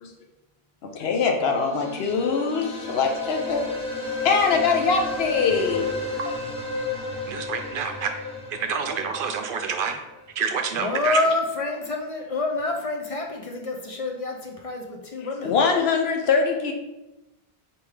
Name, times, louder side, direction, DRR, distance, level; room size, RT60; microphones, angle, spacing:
voice 1, 0.8-3.7 4.2-5.8 15.4-16.7, left 5 dB, 80° left, 2 dB, 1.0 m, -23 dB
sound 1, 1.4-10.2, left 3 dB, 5° left, 0.8 m, -33 dB
voice 2, 7.3-8.1 8.6-10.0 10.4-11.2, right 6 dB, 65° right, 5 dB, 0.7 m, -28 dB
voice 3, 10.7-15.6, left 2 dB, 45° left, 2 dB, 0.5 m, -27 dB
4.4 x 3.4 x 3.3 m, 0.99 s
omnidirectional pair, 1.0 m